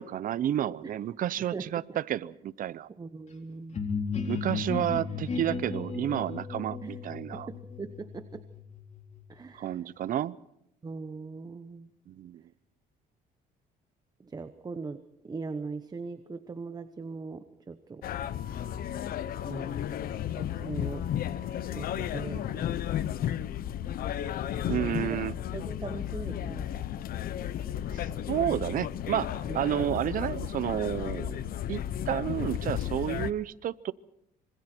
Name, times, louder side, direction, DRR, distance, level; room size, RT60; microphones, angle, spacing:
voice 1, 0.0-2.9 4.3-7.5 9.5-10.4 12.1-12.4 24.7-25.3 27.9-31.4 31.7-33.9, right 11 dB, 55° right, 19 dB, 0.7 m, -31 dB
voice 2, 3.0-3.8 6.8-6.9 7.3-8.4 9.3-9.8 10.8-11.9 14.2-15.0 15.3-18.0 19.5-19.8 20.3-21.0 21.7-23.1 25.5-26.7 29.5-29.9, right 4 dB, 25° right, 10 dB, 1.1 m, -40 dB
sound 1, 3.7-9.4, left 5 dB, 40° left, 4.0 m, -35 dB
sound 2, 18.0-33.3, left 10 dB, 60° left, 0.9 m, -33 dB
26.0 x 25.0 x 4.5 m, 0.78 s
cardioid pair, 110°, 17 cm